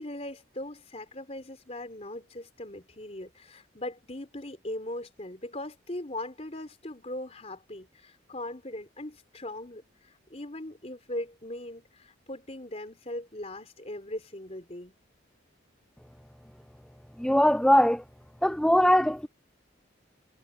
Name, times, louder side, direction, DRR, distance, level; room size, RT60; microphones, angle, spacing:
voice 1, 0.0-14.9, left 1 dB, 35° left, 4.0 m, -39 dB
voice 2, 17.2-18.0 18.4-19.3, equal, 5° left, 0.5 m, -21 dB
head